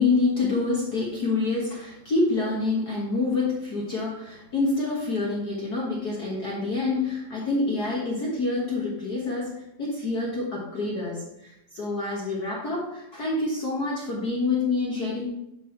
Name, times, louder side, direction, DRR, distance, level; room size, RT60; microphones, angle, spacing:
voice 1, 0.0-15.3, left 3 dB, 45° left, -4 dB, 1.3 m, -27 dB
11.0 x 4.2 x 4.4 m, 0.85 s
omnidirectional pair, 3.4 m